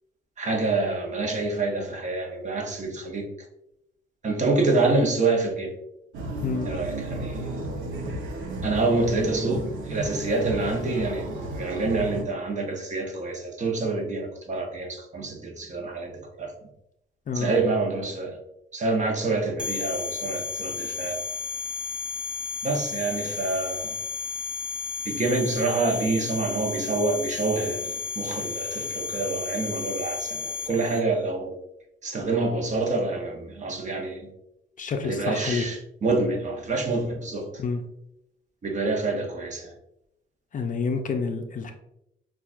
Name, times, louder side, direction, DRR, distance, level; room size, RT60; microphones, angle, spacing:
voice 1, 0.4-3.3 4.2-5.7 6.6-7.7 8.6-16.5 17.3-18.4 18.7-21.2 22.6-23.9 25.0-31.6 32.0-34.3 35.0-37.5 38.6-39.7, right 3 dB, 35° right, 2 dB, 0.8 m, -27 dB
sound 1, 6.1-12.2, right 1 dB, 80° right, 0.8 m, -33 dB
sound 2, 19.6-31.0, left 5 dB, 5° right, 0.6 m, -33 dB
voice 2, 34.8-35.7 37.6-37.8 40.5-41.7, left 5 dB, 40° left, 5 dB, 0.5 m, -28 dB
5.6 x 2.4 x 2.4 m, 0.83 s
cardioid pair, 90°, 20 cm